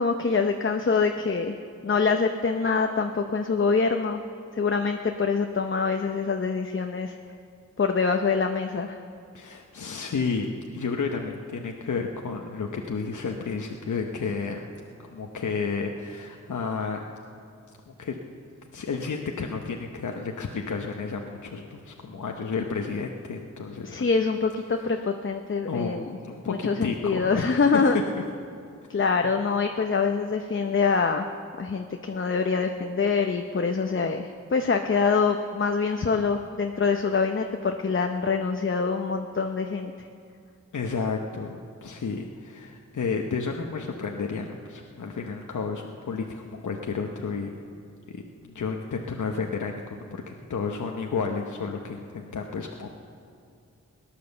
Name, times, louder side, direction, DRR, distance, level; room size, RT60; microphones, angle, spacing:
voice 1, 0.0-1.6 1.8-4.2 4.5-7.1 7.8-9.0 23.8-26.2 26.5-28.0 28.9-31.3 31.6-40.1, left 5 dB, 40° left, 5 dB, 0.8 m, -25 dB
voice 2, 9.3-10.5 10.7-14.6 15.1-17.1 17.9-18.2 18.7-23.9 25.7-28.0 40.7-47.5 48.1-49.9 50.1-53.0, left 5 dB, 80° left, 2 dB, 1.0 m, -31 dB
18.0 x 10.5 x 7.0 m, 2.4 s
wide cardioid pair, 65°, 30 cm